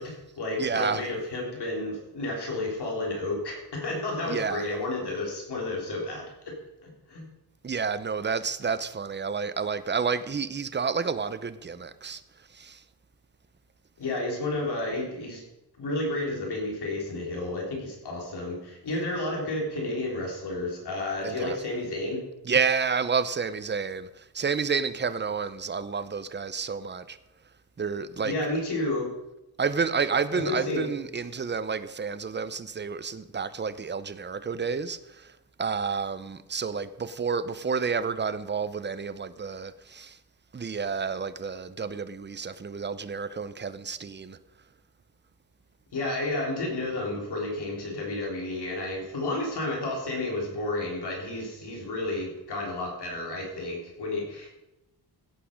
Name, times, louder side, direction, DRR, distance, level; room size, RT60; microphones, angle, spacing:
voice 1, 0.0-6.5 6.8-7.2 14.0-15.4 15.8-22.2 28.2-29.1 30.3-30.9 45.9-54.5, left 2 dB, 70° left, 3.4 m, -31 dB
voice 2, 0.6-1.0 4.3-4.7 7.6-12.2 12.5-12.8 21.2-21.6 22.4-27.2 27.8-28.4 29.6-40.2 40.5-44.4, right 5 dB, 25° right, 0.7 m, -30 dB
16.5 x 8.5 x 5.2 m
wide cardioid pair, 120°, 41 cm